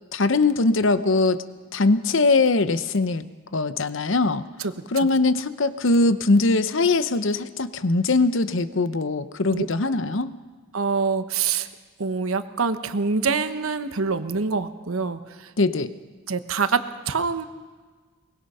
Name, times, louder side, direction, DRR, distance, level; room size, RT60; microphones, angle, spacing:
voice 1, 0.1-1.4 1.7-3.2 3.5-4.4 4.9-10.3 15.6-15.9, left 3 dB, 65° left, 13 dB, 0.8 m, -21 dB
voice 2, 4.6-5.1 9.5-9.7 10.7-11.7 12.0-15.5 16.3-17.5, right 5 dB, 85° right, 10 dB, 1.1 m, -25 dB
23.0 x 21.5 x 5.5 m, 1.4 s
head